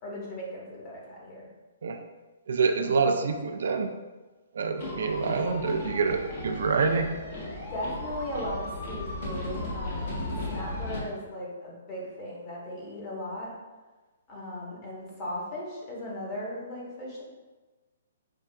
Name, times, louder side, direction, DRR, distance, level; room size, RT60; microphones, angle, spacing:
voice 1, 0.0-1.5 2.8-3.2 7.7-10.2 10.5-13.5 14.3-17.2, left 1 dB, 30° left, -5 dB, 1.1 m, -37 dB
voice 2, 2.5-3.9 4.6-7.1, right 5 dB, 70° right, 6 dB, 0.3 m, -26 dB
sound 1, 4.8-11.0, left 1 dB, 55° left, 1.2 m, -35 dB
5.4 x 2.4 x 2.3 m, 1.2 s
hypercardioid pair, 150°, 0 cm